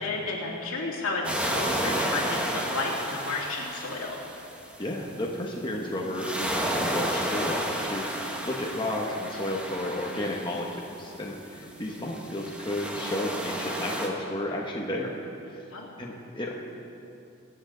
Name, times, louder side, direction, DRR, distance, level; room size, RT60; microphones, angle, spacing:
voice 1, 0.0-4.2 11.8-11.9 15.7-15.9, left 3 dB, 75° left, -3 dB, 2.6 m, -32 dB
sound 1, 1.2-5.0 6.0-11.0 11.9-14.1, right 1 dB, 5° right, 1.1 m, -32 dB
voice 2, 4.8-15.7 16.0-16.5, left 1 dB, 20° left, -2 dB, 1.1 m, -32 dB
23.0 x 8.8 x 3.9 m, 2.7 s
head